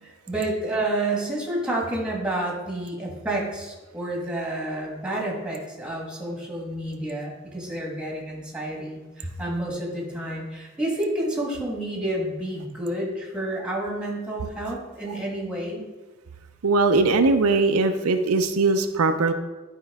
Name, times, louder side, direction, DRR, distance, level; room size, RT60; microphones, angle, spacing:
voice 1, 0.0-15.9, right 1 dB, 5° right, -3 dB, 1.4 m, -29 dB
voice 2, 16.6-19.3, right 3 dB, 85° right, 7 dB, 0.6 m, -20 dB
11.0 x 4.5 x 3.5 m, 1.2 s
head